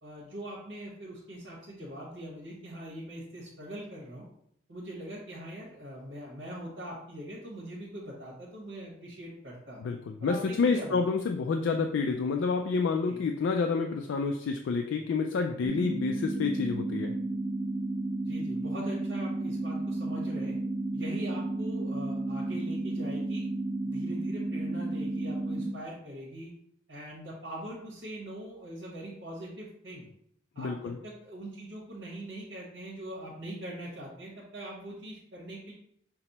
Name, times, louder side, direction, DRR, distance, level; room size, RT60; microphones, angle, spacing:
voice 1, 0.0-4.3 4.7-9.8 10.2-11.0 13.1-13.2 18.2-20.6 20.9-23.5 23.8-26.5 26.9-30.1 30.5-35.7, right 1 dB, 80° right, -6 dB, 1.1 m, -42 dB
voice 2, 9.8-17.1 30.6-30.9, left 4 dB, 85° left, 4 dB, 0.3 m, -29 dB
sound 1, 15.6-25.7, right 2 dB, 35° right, 1.2 m, -32 dB
5.9 x 2.1 x 4.0 m, 0.71 s
head